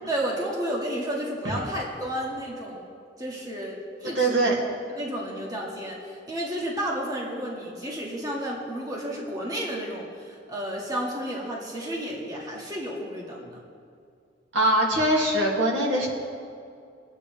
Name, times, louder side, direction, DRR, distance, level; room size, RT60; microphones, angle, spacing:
voice 1, 0.1-2.8 3.2-4.4 4.9-13.6, equal, 20° right, -4 dB, 1.9 m, -32 dB
voice 2, 4.0-4.6 14.5-16.1, right 1 dB, 75° right, -3 dB, 2.4 m, -22 dB
22.5 x 8.8 x 3.3 m, 2.3 s
head